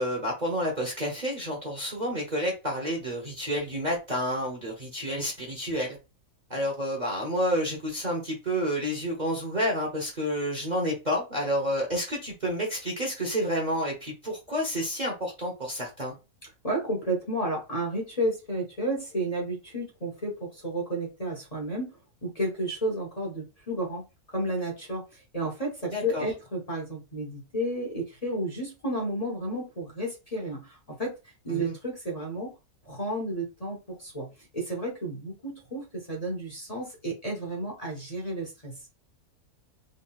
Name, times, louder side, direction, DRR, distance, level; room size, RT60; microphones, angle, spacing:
voice 1, 0.0-6.0 6.5-16.1 25.9-26.2 31.5-31.7, equal, 35° right, 1.0 m, -29 dB
voice 2, 16.6-21.9 22.2-24.0 24.3-25.0 25.3-31.1 31.4-32.5 32.8-34.3 34.5-38.7, right 1 dB, 25° left, 1.2 m, -32 dB
3.9 x 3.6 x 2.3 m
omnidirectional pair, 1.6 m